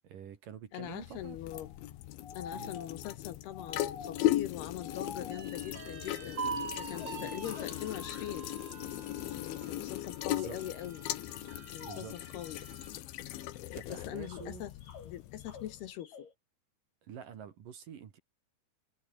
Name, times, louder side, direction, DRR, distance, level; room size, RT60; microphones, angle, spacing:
voice 1, 0.0-1.4 2.5-2.7 10.3-10.6 11.8-12.1 13.7-14.6 17.0-18.2, right 8 dB, 55° right, 3.3 m, -47 dB
voice 2, 0.7-1.7 2.3-6.4 6.8-8.5 9.2-11.1 11.7-12.7 13.6-14.7 15.0-16.3, left 12 dB, 70° left, 3.0 m, -42 dB
sound 1, 0.8-15.9, left 14 dB, 85° left, 3.8 m, -38 dB
sound 2, 1.5-4.5 4.8-6.6 6.9-8.4 9.2-9.3 10.2-10.7 11.3-13.4 13.8-16.3, left 6 dB, 50° left, 5.7 m, -49 dB
sound 3, 5.3-13.0 13.4-13.5 13.9-14.6, right 6 dB, 35° right, 1.9 m, -45 dB
omnidirectional pair, 5.3 m